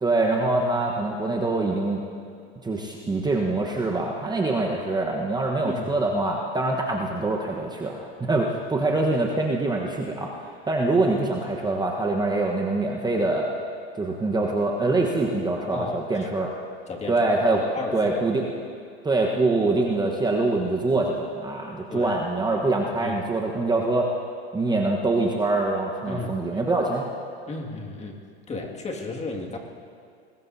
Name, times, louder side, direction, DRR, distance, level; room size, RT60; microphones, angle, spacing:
voice 1, 0.0-2.0 2.6-10.3 10.6-13.5 14.0-16.5 17.1-17.6 17.9-18.5 19.0-24.1 24.5-27.1, right 2 dB, 15° right, -1 dB, 1.2 m, -24 dB
voice 2, 5.6-6.0 15.7-16.5 16.9-17.2 17.5-18.1 21.9-22.2 23.0-23.2 26.1-26.6 27.5-28.2 28.5-29.6, left 3 dB, 20° left, 0 dB, 2.2 m, -34 dB
24.0 x 20.0 x 2.8 m, 2.3 s
hypercardioid pair, 105°, 32 cm